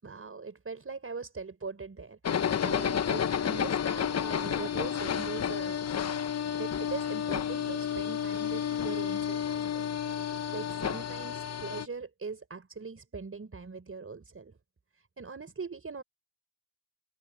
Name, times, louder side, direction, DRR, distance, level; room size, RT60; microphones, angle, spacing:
voice 1, 0.0-5.9 6.5-9.6 10.5-14.6 15.0-16.0, right 4 dB, 25° right, 5.1 m, -41 dB
sound 1, 2.2-11.9, left 8 dB, 30° left, 1.0 m, -31 dB
hypercardioid pair, 60°, 49 cm